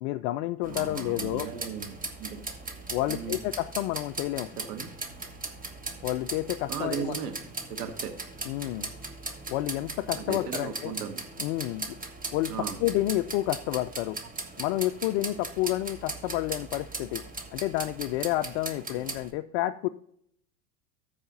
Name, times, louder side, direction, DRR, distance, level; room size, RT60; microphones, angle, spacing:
voice 1, 0.0-1.5 2.9-4.5 6.0-7.2 8.4-8.9 9.5-10.9 11.4-12.0 12.3-14.2 14.6-17.2 17.5-19.9, left 16 dB, 45° left, 12 dB, 0.4 m, -30 dB
sound 1, 0.6-19.3, right 3 dB, 15° right, 1.5 m, -39 dB
voice 2, 0.7-2.5 3.1-3.4 4.7-4.9 6.7-7.4 7.7-8.1 10.2-11.2 12.5-12.8, right 8 dB, 70° right, 6 dB, 1.6 m, -36 dB
14.0 x 4.8 x 4.1 m, 0.69 s
hypercardioid pair, 100°, 48 cm